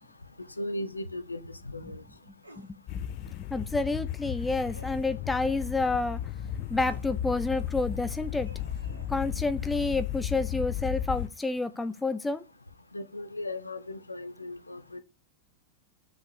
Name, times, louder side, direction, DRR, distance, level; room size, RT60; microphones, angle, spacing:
voice 1, 0.6-2.0 12.9-15.0, left 1 dB, 80° left, 1.0 m, -37 dB
sound 1, 2.4-2.7 4.7-5.1 6.7-7.1 8.4-9.1, equal, 85° right, 2.0 m, -50 dB
sound 2, 2.9-11.3, left 11 dB, 40° left, 0.7 m, -34 dB
voice 2, 3.5-6.2 6.7-8.5 9.1-12.4, left 3 dB, 10° left, 0.7 m, -29 dB
6.6 x 5.3 x 6.7 m
figure-of-eight pair, 90°, 0 cm